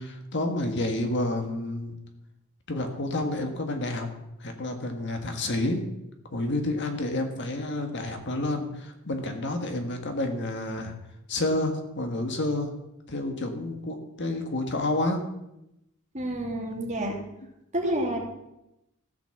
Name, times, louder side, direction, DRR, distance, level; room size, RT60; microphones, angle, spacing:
voice 1, 0.0-1.9 2.7-4.1 4.4-5.8 6.3-10.9 11.3-12.7 13.1-15.2, left 2 dB, 55° left, 5 dB, 1.6 m, -29 dB
voice 2, 16.1-17.2 17.7-18.2, right 1 dB, 30° right, 0 dB, 2.5 m, -29 dB
14.5 x 6.0 x 7.2 m, 0.88 s
head